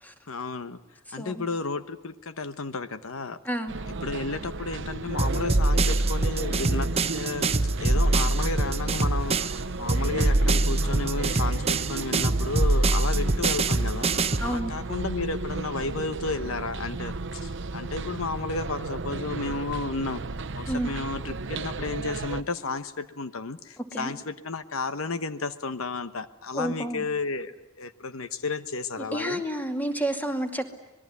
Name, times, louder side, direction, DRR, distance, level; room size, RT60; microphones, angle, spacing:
voice 1, 0.3-0.8 1.1-3.4 3.9-7.5 7.8-9.4 9.8-14.1 14.4-20.2 20.5-27.5 27.8-29.4, left 3 dB, 80° left, 12 dB, 1.1 m, -32 dB
sound 1, 3.7-22.4, right 3 dB, 60° right, 0.9 m, -34 dB
sound 2, 5.2-9.6 9.9-14.5, right 2 dB, 30° right, 0.8 m, -24 dB
voice 2, 14.4-14.7 20.7-20.9 23.9-24.1 26.5-27.1 29.1-30.7, right 1 dB, 10° left, 5 dB, 2.3 m, -30 dB
26.0 x 20.5 x 9.5 m, 0.99 s
head